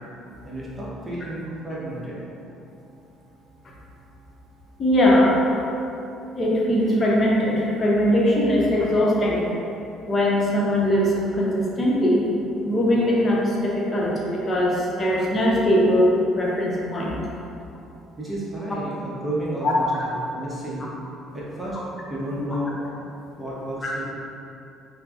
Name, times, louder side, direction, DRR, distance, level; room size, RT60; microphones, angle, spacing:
voice 1, 0.4-2.2 18.2-20.9 21.3-21.8 22.1-22.7 23.0-23.1 23.4-24.0, right 1 dB, 10° right, -7 dB, 0.8 m, -31 dB
voice 2, 4.8-5.4 6.3-9.5 10.1-12.2 12.6-17.1 19.6-19.7, equal, 35° left, -4 dB, 0.7 m, -20 dB
5.6 x 2.0 x 2.4 m, 2.8 s
figure-of-eight pair, 50°, 0 cm